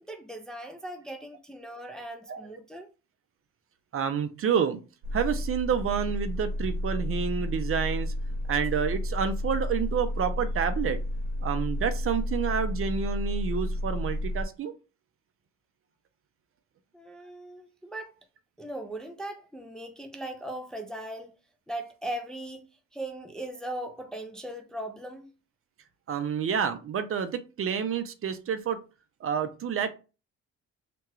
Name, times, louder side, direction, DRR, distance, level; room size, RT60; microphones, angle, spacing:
voice 1, 0.0-2.9 16.9-18.2 18.6-21.3 21.7-22.7 22.9-25.3, right 1 dB, ahead, 0.4 m, -39 dB
voice 2, 3.9-4.8 5.1-8.1 8.5-11.0 11.4-14.7 26.1-28.8 29.2-29.9, right 7 dB, 45° right, 0.5 m, -29 dB
sound 1, 5.0-14.4, left 1 dB, 70° right, 0.9 m, -31 dB
2.9 x 2.3 x 3.0 m
cardioid pair, 90°, 30 cm